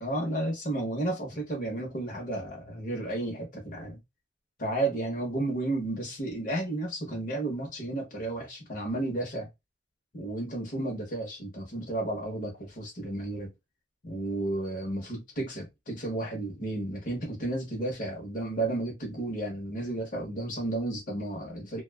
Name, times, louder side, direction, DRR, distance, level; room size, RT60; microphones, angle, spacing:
voice 1, 0.0-4.0 4.6-9.5 10.1-13.5 14.0-21.8, right 2 dB, 50° left, 0.9 m, -32 dB
2.4 x 2.3 x 2.2 m
head